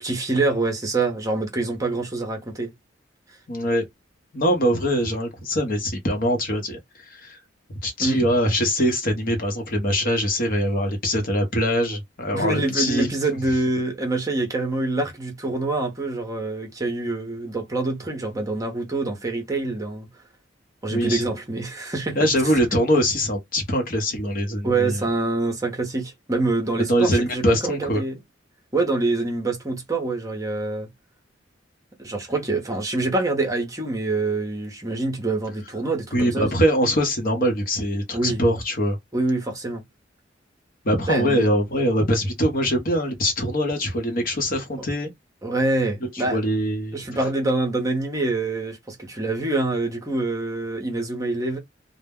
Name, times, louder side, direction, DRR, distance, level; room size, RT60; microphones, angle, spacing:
voice 1, 0.0-2.7 8.0-8.2 12.3-20.1 20.8-22.5 24.6-28.2 28.7-30.9 32.0-36.5 38.1-38.4 39.1-39.8 41.1-41.5 45.4-46.4 46.9-51.6, right 2 dB, 20° right, 0.7 m, -25 dB
voice 2, 3.5-3.8 4.3-6.8 7.1-7.4 7.8-13.1 20.9-21.2 22.2-25.0 26.9-28.0 36.1-39.0 40.8-45.1 46.3-47.0, equal, 50° left, 0.9 m, -23 dB
2.1 x 2.1 x 3.5 m
head